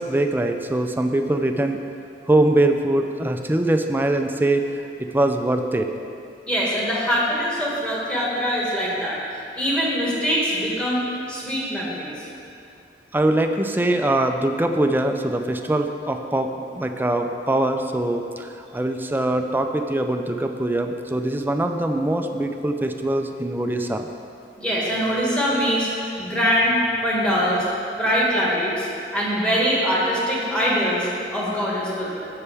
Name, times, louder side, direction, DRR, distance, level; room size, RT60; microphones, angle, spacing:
voice 1, 0.0-1.8 2.3-4.6 5.0-5.9 13.1-24.1, right 1 dB, 10° right, 5 dB, 0.5 m, -22 dB
voice 2, 6.5-9.2 9.6-12.1 24.6-25.9 26.2-27.7 28.0-32.3, equal, 5° left, -6 dB, 1.9 m, -23 dB
16.5 x 5.6 x 3.5 m, 2.6 s
head